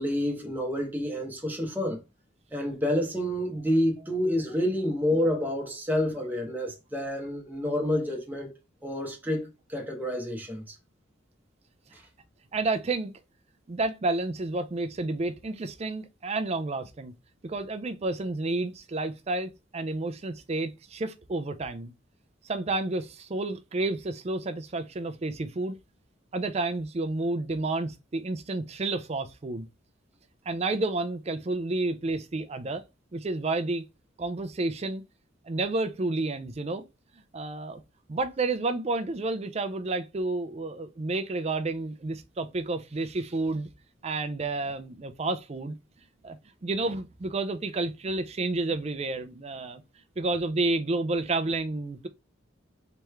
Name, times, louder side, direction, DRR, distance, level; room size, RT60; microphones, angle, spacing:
voice 1, 0.0-2.0 2.5-8.5 8.8-10.7 11.9-12.0, left 1 dB, 10° right, 0.9 m, -29 dB
voice 2, 12.5-13.1 13.7-17.1 17.4-21.9 22.4-25.8 26.3-29.7 30.5-32.8 33.1-33.8 34.2-35.0 35.4-36.8 37.3-37.8 38.1-43.7 44.0-45.8 46.2-46.4 46.6-49.8 50.2-52.1, right 2 dB, 35° right, 0.4 m, -30 dB
3.4 x 3.1 x 3.2 m
head